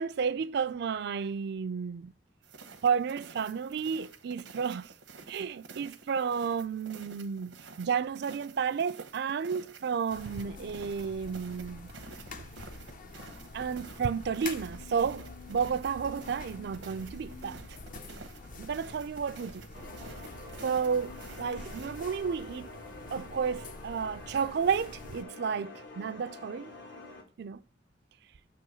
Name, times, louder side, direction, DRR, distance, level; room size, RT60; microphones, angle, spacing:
voice 1, 0.0-2.1 2.8-4.9 5.3-11.9 12.4-12.5 13.5-17.6 18.6-19.6 20.6-22.7 23.1-26.7 27.4-27.6, right 6 dB, 65° right, 0.4 m, -32 dB
sound 1, 2.4-22.1, right 4 dB, 85° right, 0.8 m, -51 dB
sound 2, 10.1-25.2, left 3 dB, 45° left, 0.6 m, -46 dB
sound 3, 19.7-27.2, left 2 dB, 75° left, 1.6 m, -47 dB
7.2 x 3.0 x 6.0 m
head